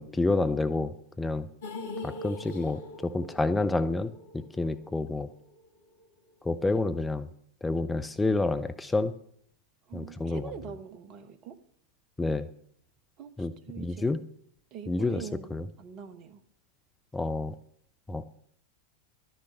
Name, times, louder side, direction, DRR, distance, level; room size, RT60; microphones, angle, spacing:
voice 1, 0.0-1.5 2.0-5.3 6.4-7.3 7.6-9.1 9.9-10.4 12.2-12.5 13.4-13.5 13.8-14.2 14.9-15.2 15.5-15.6 17.1-17.5 18.1-18.2, left 2 dB, 10° left, 10 dB, 0.5 m, -29 dB
sound 1, 1.6-5.8 6.0-6.1 6.5-6.6, left 2 dB, 60° left, 1.4 m, -42 dB
voice 2, 9.9-11.6 13.2-14.1 14.7-16.4, right 7 dB, 35° right, 10 dB, 1.1 m, -44 dB
11.5 x 6.5 x 8.0 m, 0.67 s
figure-of-eight pair, 90°, 0 cm